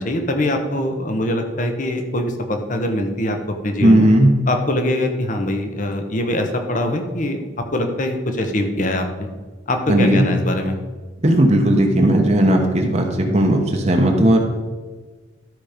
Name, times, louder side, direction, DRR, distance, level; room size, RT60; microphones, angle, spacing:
voice 1, 0.0-3.4 3.6-4.1 4.5-9.3 9.7-10.7, left 1 dB, 45° left, 5 dB, 1.1 m, -22 dB
voice 2, 3.8-4.3 9.9-10.2 11.2-14.4, right 1 dB, 35° right, 2 dB, 1.1 m, -15 dB
12.5 x 5.1 x 5.1 m, 1.4 s
head